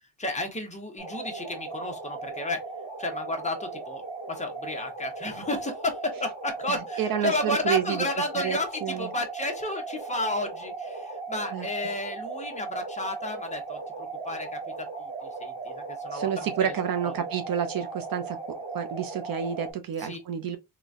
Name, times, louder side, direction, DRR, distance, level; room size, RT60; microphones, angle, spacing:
voice 1, 0.2-2.6 3.0-4.0 4.3-14.6 15.0-16.5 17.0-17.1 20.0-20.2, left 2 dB, 15° left, 0.8 m, -32 dB
sound 1, 1.0-19.7, right 3 dB, 15° right, 1.4 m, -37 dB
voice 2, 6.7-8.1 8.4-9.1 11.5-11.7 16.1-20.6, right 8 dB, 50° right, 0.5 m, -30 dB
3.8 x 2.2 x 2.4 m
cardioid pair, 135°, 45 cm